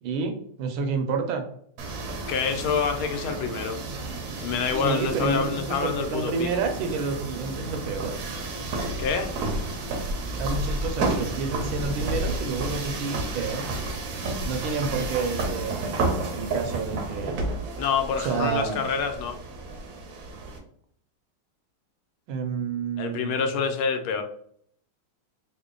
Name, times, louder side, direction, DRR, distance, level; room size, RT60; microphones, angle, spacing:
voice 1, 0.0-1.4 4.8-8.2 10.4-13.7 14.5-16.1 16.3-17.4 18.2-18.8 22.3-23.4, right 5 dB, 80° right, 6 dB, 1.4 m, -29 dB
sound 1, 1.8-20.6, right 2 dB, 65° right, 1.0 m, -31 dB
voice 2, 2.3-3.8 4.4-6.5 9.0-9.3 14.7-14.8 17.8-19.4 23.0-24.2, left 6 dB, 85° left, 6 dB, 1.4 m, -27 dB
3.6 x 2.1 x 3.6 m, 0.63 s
omnidirectional pair, 2.3 m